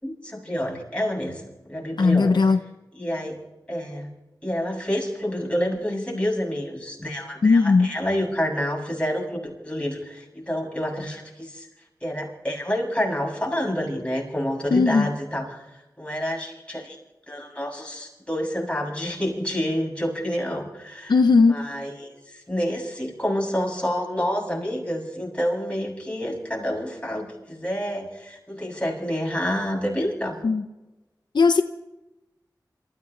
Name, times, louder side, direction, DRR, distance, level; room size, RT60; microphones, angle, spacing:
voice 1, 0.0-2.4 2.9-3.4 3.7-4.1 4.4-11.7 12.0-15.6 16.0-17.0 17.3-21.2 21.5-30.4, equal, 15° left, -1 dB, 7.4 m, -28 dB
voice 2, 2.0-2.6 7.4-7.9 14.7-15.1 21.1-21.6 30.4-30.6 31.3-31.6, left 4 dB, 85° left, 7 dB, 0.7 m, -17 dB
27.5 x 15.5 x 3.3 m, 1.0 s
wide cardioid pair, 60°, 7 cm